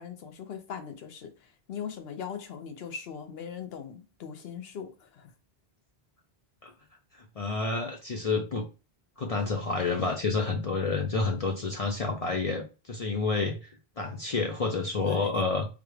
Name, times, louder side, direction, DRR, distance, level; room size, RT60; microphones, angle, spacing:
voice 1, 0.0-5.3 15.0-15.4, left 7 dB, 75° left, 0.9 m, -40 dB
voice 2, 7.4-8.6 9.2-13.7 14.0-15.7, left 3 dB, 50° left, 0.5 m, -29 dB
3.7 x 2.3 x 3.2 m
omnidirectional pair, 1.1 m